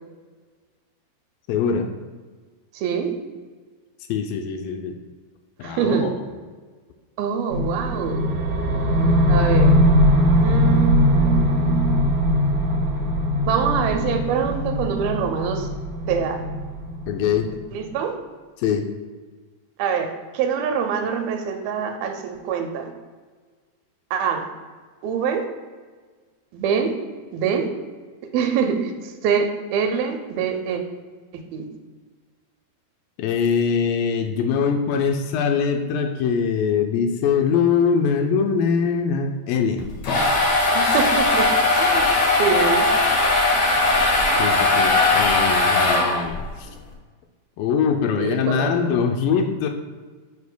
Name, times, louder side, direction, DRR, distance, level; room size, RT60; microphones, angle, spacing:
voice 1, 1.5-1.9 4.1-5.0 5.6-6.1 17.1-17.5 18.6-18.9 33.2-39.8 44.4-46.7 47.6-49.7, left 6 dB, 80° left, 4 dB, 2.2 m, -22 dB
voice 2, 2.7-3.1 5.6-6.1 7.2-8.2 9.3-9.7 10.4-12.0 13.5-15.7 16.1-16.4 17.7-18.1 19.8-22.9 24.1-24.5 25.0-25.4 26.5-26.9 27.3-27.7 28.3-30.8 31.3-31.7 40.7-41.5 41.8-42.1 42.4-42.9 48.2-48.7, right 7 dB, 85° right, 5 dB, 2.6 m, -24 dB
sound 1, 7.5-17.6, equal, 65° right, 2.2 m, -20 dB
sound 2, 39.8-46.5, left 2 dB, 65° left, 2.5 m, -19 dB
7.2 x 6.2 x 2.2 m, 1.4 s
omnidirectional pair, 4.2 m